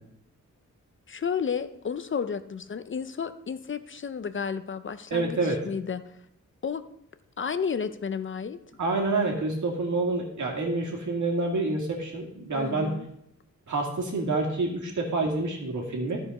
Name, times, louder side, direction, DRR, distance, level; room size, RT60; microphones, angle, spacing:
voice 1, 1.1-6.2 6.6-6.8 7.4-8.6 12.6-13.1, left 6 dB, 40° left, 11 dB, 0.5 m, -32 dB
voice 2, 5.1-5.6 8.8-12.9 13.7-16.2, right 2 dB, 75° right, 0 dB, 2.1 m, -27 dB
12.5 x 4.8 x 5.3 m, 0.75 s
wide cardioid pair, 165°, 30 cm